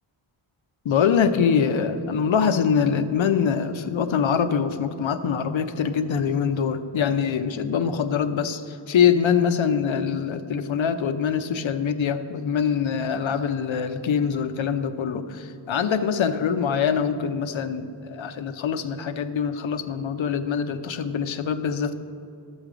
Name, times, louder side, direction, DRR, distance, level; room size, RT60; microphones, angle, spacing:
voice 1, 0.8-21.9, left 7 dB, 65° left, 9 dB, 0.8 m, -24 dB
12.0 x 7.2 x 5.0 m, 2.5 s
cardioid pair, 50°, 50 cm